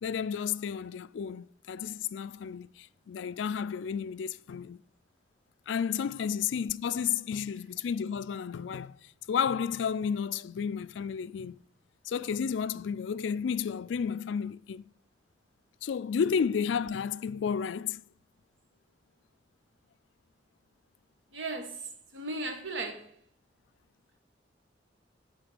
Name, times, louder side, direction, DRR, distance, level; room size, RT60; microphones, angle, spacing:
voice 1, 0.0-4.8 5.7-11.6 12.0-14.8 15.8-18.0, left 7 dB, 85° left, 0.3 m, -32 dB
voice 2, 21.3-23.1, right 2 dB, 90° right, 1.3 m, -37 dB
9.9 x 3.6 x 6.2 m
head